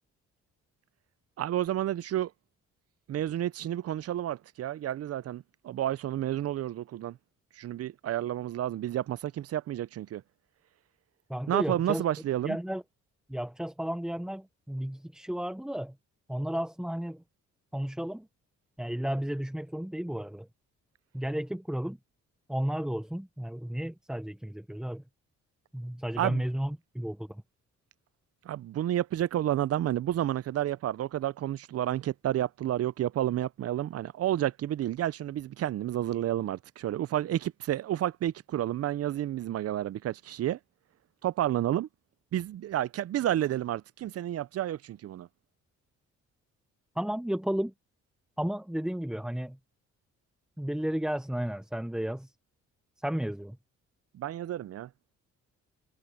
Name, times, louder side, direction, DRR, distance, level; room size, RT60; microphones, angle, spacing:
voice 1, 1.4-2.3 3.1-7.2 7.6-10.2 11.5-12.6 26.2-26.4 28.4-40.6 41.2-41.9 42.3-45.3 54.1-54.9, right 12 dB, 55° right, 0.6 m, -30 dB
voice 2, 11.3-12.0 12.4-12.8 13.3-15.9 16.3-17.2 17.7-18.3 18.8-20.5 21.1-22.0 22.5-25.0 25.7-27.4 47.0-47.7 48.4-49.6 50.6-52.3 53.0-53.6, equal, ahead, 0.8 m, -33 dB
cardioid pair, 90°, 30 cm